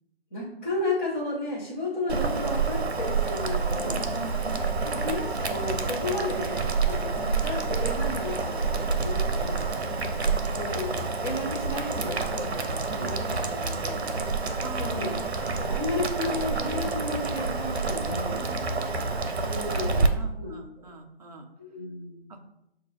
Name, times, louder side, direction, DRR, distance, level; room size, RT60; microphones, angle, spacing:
voice 1, 0.3-4.0 4.8-9.7 10.5-13.2 13.4-14.1 14.8-18.5 19.4-20.9 21.6-22.4, left 2 dB, 10° left, -12 dB, 0.5 m, -33 dB
Boiling, 2.1-20.1, right 4 dB, 80° right, 0.7 m, -28 dB
voice 2, 3.8-5.0 9.7-10.8 12.9-13.7 14.3-16.0 18.3-19.4 19.8-21.5 22.3-22.5, right 2 dB, 40° right, 4 dB, 0.5 m, -43 dB
6.3 x 2.3 x 3.3 m, 0.83 s
figure-of-eight pair, 150°, 32 cm